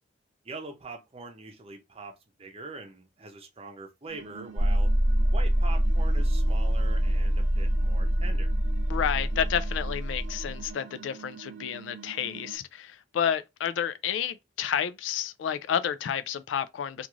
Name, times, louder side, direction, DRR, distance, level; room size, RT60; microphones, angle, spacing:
voice 1, 0.4-4.9 5.3-8.5, right 3 dB, 30° right, 0.6 m, -43 dB
sound 1, 4.1-12.6, right 6 dB, 70° right, 0.4 m, -47 dB
sound 2, 4.6-10.7, equal, 40° left, 0.8 m, -25 dB
voice 2, 8.9-17.1, left 8 dB, 75° left, 0.3 m, -30 dB
2.5 x 2.4 x 3.0 m
head